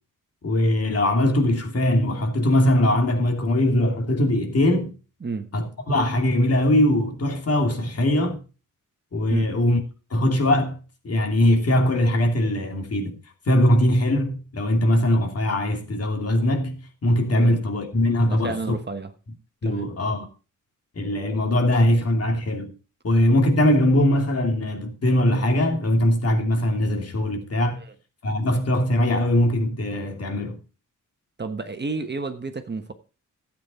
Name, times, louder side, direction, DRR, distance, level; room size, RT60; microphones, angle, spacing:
voice 1, 0.4-4.9 5.5-8.4 9.1-9.8 10.1-10.8 11.0-13.2 13.5-18.5 19.6-20.3 21.0-22.7 23.0-27.8 28.2-30.6, left 1 dB, 50° left, 2.8 m, -21 dB
voice 2, 18.2-19.1 19.6-19.9 27.7-27.9 31.4-32.9, right 4 dB, 35° right, 1.3 m, -31 dB
12.5 x 8.7 x 4.3 m
cardioid pair, 100°, 31 cm